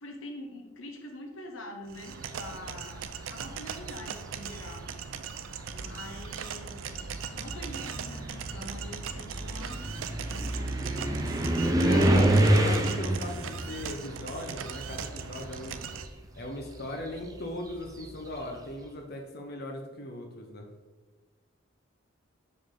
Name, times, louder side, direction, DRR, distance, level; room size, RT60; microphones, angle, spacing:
voice 1, 0.0-4.9 5.7-6.8 7.3-10.0 10.3-11.2 12.6-12.7, left 1 dB, 90° left, 3 dB, 1.0 m, -44 dB
sound 1, 1.9-16.1, right 6 dB, 85° right, 0.4 m, -39 dB
sound 2, 3.4-3.9 4.9-5.0 5.6-15.5 15.8-18.4, right 1 dB, 20° right, 0.5 m, -28 dB
voice 2, 11.8-15.8 16.4-20.7, left 1 dB, 55° left, 2 dB, 0.7 m, -38 dB
6.0 x 5.1 x 3.7 m, 1.3 s
head